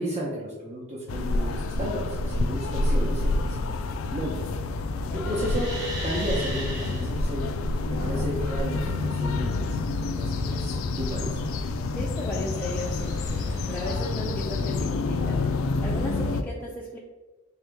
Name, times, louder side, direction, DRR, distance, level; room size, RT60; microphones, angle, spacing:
voice 1, 0.0-4.4 5.1-5.7 6.0-7.5 7.9-11.4, right 1 dB, 35° right, -8 dB, 0.8 m, -33 dB
sound 1, 1.1-16.4, left 3 dB, 85° left, 0.3 m, -28 dB
voice 2, 5.1-5.4 8.0-8.3 11.9-13.4 13.7-17.0, left 1 dB, 10° left, -4 dB, 0.4 m, -36 dB
sound 2, 5.2-7.1 11.9-13.9, right 1 dB, 65° right, 1.1 m, -39 dB
sound 3, 8.9-12.7, left 7 dB, 85° right, 0.4 m, -45 dB
3.8 x 2.8 x 3.4 m, 1.2 s
head